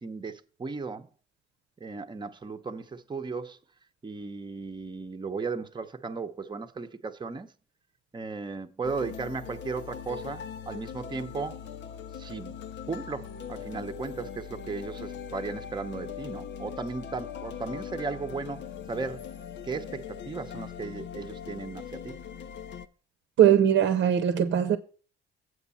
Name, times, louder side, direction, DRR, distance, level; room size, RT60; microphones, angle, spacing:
voice 1, 0.0-1.1 1.8-3.6 4.0-7.5 8.1-11.6 12.1-12.6 12.9-19.2 19.6-22.2, right 4 dB, 25° right, 0.8 m, -36 dB
sound 1, 8.8-22.9, left 8 dB, 65° left, 0.7 m, -41 dB
voice 2, 23.4-24.8, right 9 dB, 70° right, 0.8 m, -20 dB
8.0 x 5.9 x 5.6 m
cardioid pair, 90°, 20 cm